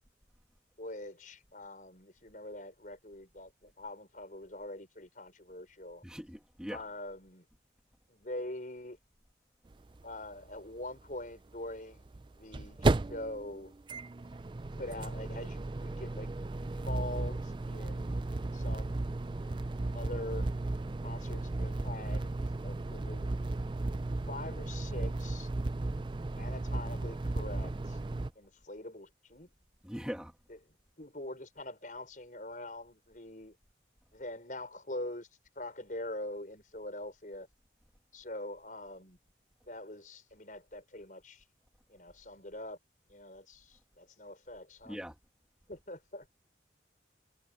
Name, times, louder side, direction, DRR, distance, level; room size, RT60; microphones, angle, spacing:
voice 1, 0.8-6.0 6.7-7.5 8.1-9.0 10.0-12.0 12.3-13.8 14.7-19.2 19.9-20.5 21.0-22.3 22.6-23.3 24.3-25.5 26.3-28.0 28.3-29.5 30.5-33.6 34.1-35.3 35.5-37.5 38.1-39.2 39.6-41.4 41.9-42.8 43.1-45.0 45.7-46.3, left 1 dB, 45° left, 6.1 m, -44 dB
voice 2, 6.0-6.8 29.8-30.3 44.8-45.1, equal, 5° right, 1.6 m, -41 dB
sound 1, 9.7-9.8 10.0-10.1 12.0-28.3, right 2 dB, 25° right, 0.4 m, -34 dB
head